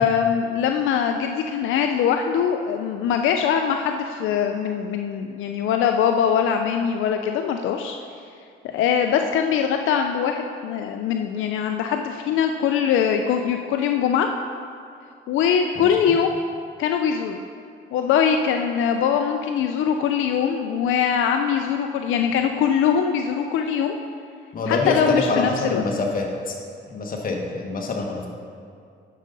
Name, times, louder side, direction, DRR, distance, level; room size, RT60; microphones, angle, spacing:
voice 1, 0.0-8.0 8.6-14.3 15.3-16.4 16.8-17.4 17.9-23.9 24.7-25.8, left 8 dB, 85° left, 5 dB, 0.5 m, -22 dB
voice 2, 24.5-26.5 26.9-28.3, left 3 dB, 45° left, 0 dB, 1.5 m, -25 dB
10.0 x 6.5 x 4.0 m, 2.4 s
cardioid pair, 90°, 20 cm